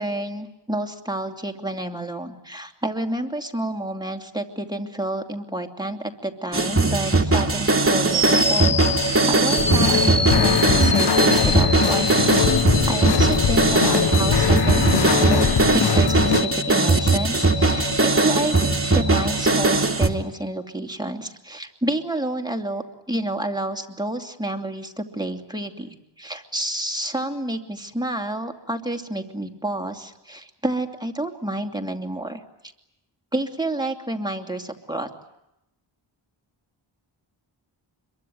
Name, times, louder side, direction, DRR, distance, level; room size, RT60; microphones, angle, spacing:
voice 1, 0.0-12.3 12.6-18.6 18.9-32.4 33.3-35.1, right 1 dB, 10° right, 4 dB, 2.7 m, -29 dB
sound 1, 6.5-20.1, right 3 dB, 25° right, 2.4 m, -20 dB
sound 2, 8.1-20.2, left 1 dB, 25° left, 4.9 m, -27 dB
sound 3, 9.6-16.4, left 7 dB, 55° left, 1.0 m, -22 dB
26.0 x 23.0 x 9.4 m, 0.87 s
wide cardioid pair, 65°, 48 cm